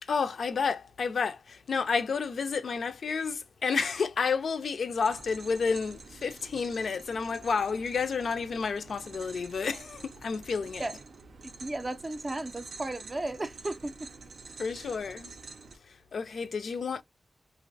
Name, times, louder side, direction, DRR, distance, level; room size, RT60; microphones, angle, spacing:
voice 1, 0.0-10.8 14.6-15.3 15.7-17.0, left 5 dB, 75° left, 0.3 m, -30 dB
sound 1, 5.0-15.8, right 4 dB, 85° right, 0.5 m, -48 dB
voice 2, 11.4-14.1, right 2 dB, 25° right, 0.4 m, -35 dB
2.5 x 2.0 x 2.5 m
wide cardioid pair, 100°, 0 cm